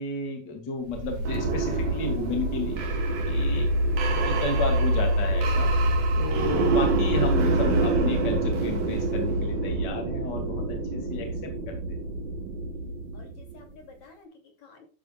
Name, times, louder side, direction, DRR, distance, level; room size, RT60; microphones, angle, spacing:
voice 1, 0.0-2.9 3.3-3.7 4.3-5.7 6.2-11.8, left 3 dB, 30° left, 4 dB, 2.7 m, -32 dB
sound 1, 0.8-13.6, right 2 dB, 60° right, 3.3 m, -26 dB
voice 2, 13.1-14.9, left 4 dB, 50° left, 3 dB, 3.8 m, -52 dB
12.5 x 9.2 x 2.4 m, 0.35 s
omnidirectional pair, 4.3 m